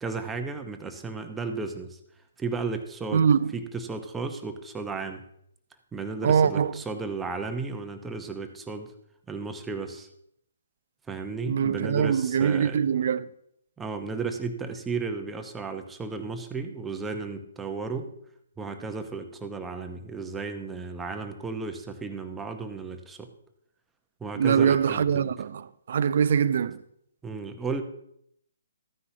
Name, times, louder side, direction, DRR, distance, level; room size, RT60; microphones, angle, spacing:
voice 1, 0.0-2.0 2.4-3.3 3.5-5.2 5.9-8.9 9.3-10.1 11.1-12.8 13.8-18.1 18.6-23.3 24.2-25.3 27.2-27.8, right 4 dB, 10° right, 0.9 m, -34 dB
voice 2, 3.1-3.5 6.2-6.8 11.5-13.3 24.3-26.8, right 7 dB, 55° right, 0.5 m, -23 dB
14.0 x 9.7 x 2.8 m
figure-of-eight pair, 135°, 0 cm